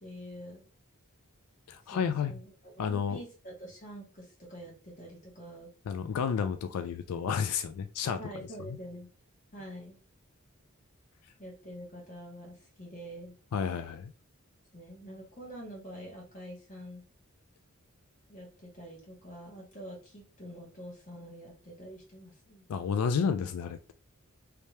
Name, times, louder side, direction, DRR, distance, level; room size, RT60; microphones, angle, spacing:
voice 1, 0.0-0.7 1.8-5.7 8.2-9.1 9.5-10.0 11.4-13.4 14.7-17.0 18.3-22.6, equal, 35° left, -2 dB, 1.5 m, -46 dB
voice 2, 1.7-2.4 2.8-3.2 5.9-8.2 13.5-14.1 22.7-23.9, left 6 dB, 90° left, 9 dB, 0.3 m, -31 dB
3.3 x 2.8 x 3.2 m, 0.34 s
head